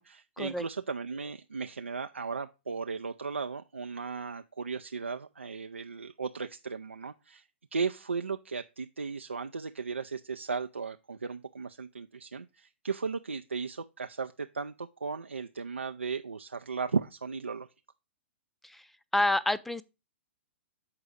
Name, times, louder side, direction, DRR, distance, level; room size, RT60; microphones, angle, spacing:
voice 1, 0.0-17.7, right 5 dB, 85° right, 0.4 m, -36 dB
voice 2, 19.1-19.8, left 1 dB, 5° left, 0.4 m, -28 dB
7.0 x 4.8 x 4.9 m
figure-of-eight pair, 115°, 7 cm